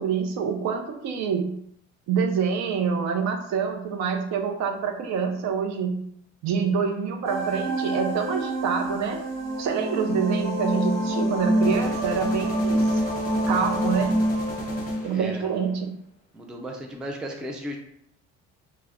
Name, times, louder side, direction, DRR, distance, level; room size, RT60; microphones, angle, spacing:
voice 1, 0.0-1.6 2.1-6.0 6.4-9.2 9.6-13.0 13.5-14.3 15.0-15.9, right 6 dB, 55° right, 5 dB, 0.5 m, -26 dB
sound 1, 6.9-7.0 11.6-15.8, left 2 dB, 25° left, 0.7 m, -39 dB
sound 2, 7.2-15.0, right 1 dB, 75° right, 0.9 m, -26 dB
voice 2, 15.1-15.4 16.3-17.8, equal, ahead, 1 dB, 0.3 m, -35 dB
2.3 x 2.1 x 3.4 m, 0.72 s
supercardioid pair, 90°, 33 cm